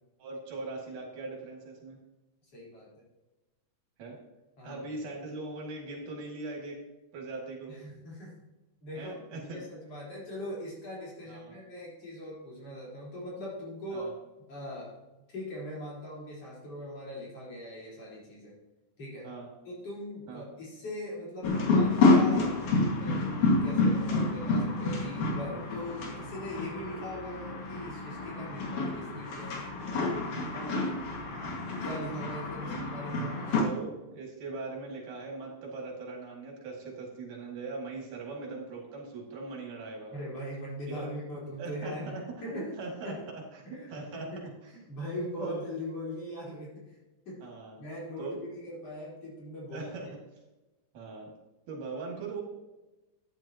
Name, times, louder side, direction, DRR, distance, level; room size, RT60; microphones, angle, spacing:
voice 1, 0.2-2.0 4.0-4.2 4.6-6.8 7.1-7.8 8.9-9.6 11.3-11.6 13.9-14.1 19.2-19.5 20.3-20.5 30.5-30.9 32.6-32.8 33.5-40.1 40.9-41.1 41.6-42.2 42.5-43.2 43.5-44.3 44.6-44.7 45.4-45.7 47.4-47.9 48.2-48.4 49.7-50.1 50.9-51.3 51.7-52.4, right 3 dB, 85° right, -2 dB, 3.9 m, -40 dB
voice 2, 2.5-2.9 4.6-5.0 7.7-8.3 8.8-14.1 14.5-15.0 15.3-18.5 19.0-19.3 19.6-22.6 23.0-29.6 31.8-33.7 40.1-42.7 43.0-43.2 43.6-47.0 47.2-47.5 47.8-49.9, left 1 dB, 50° left, -6 dB, 5.1 m, -40 dB
sound 1, 21.4-33.6, left 3 dB, 70° left, 3.3 m, -28 dB
14.0 x 9.8 x 2.9 m, 1.1 s
omnidirectional pair, 3.6 m